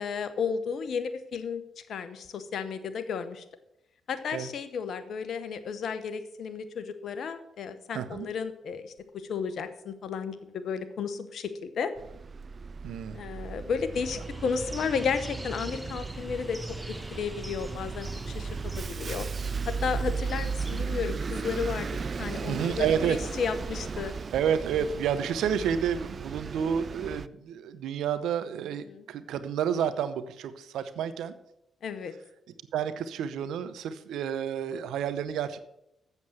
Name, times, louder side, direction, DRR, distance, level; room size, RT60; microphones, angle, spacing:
voice 1, 0.0-3.4 4.1-11.9 13.1-16.6 17.1-19.3 19.7-21.9 22.2-24.1 28.9-29.0 31.8-32.1, left 6 dB, 70° left, 11 dB, 1.0 m, -33 dB
voice 2, 7.9-8.3 12.8-13.2 22.5-23.2 24.3-31.3 32.7-35.6, right 8 dB, 80° right, 12 dB, 0.7 m, -30 dB
Bus, 12.0-27.3, right 5 dB, 50° right, 0.3 m, -36 dB
sound 1, 13.9-20.8, right 1 dB, 15° right, 1.4 m, -42 dB
8.1 x 7.1 x 7.8 m, 0.82 s
supercardioid pair, 50°, 0 cm